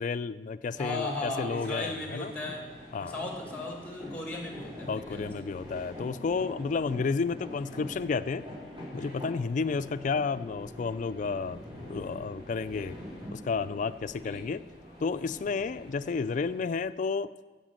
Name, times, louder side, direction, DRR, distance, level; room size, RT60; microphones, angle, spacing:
voice 1, 0.0-2.3 2.9-3.2 4.9-8.5 8.9-11.6 11.9-13.0 13.3-14.6 15.0-17.3, left 4 dB, 45° left, 14 dB, 0.3 m, -31 dB
sound 1, 0.6-16.9, equal, 30° right, 4.4 m, -45 dB
voice 2, 0.8-2.6 3.0-5.4 14.2-14.4, left 2 dB, 10° left, 1 dB, 2.1 m, -36 dB
9.0 x 7.0 x 7.6 m, 1.3 s
head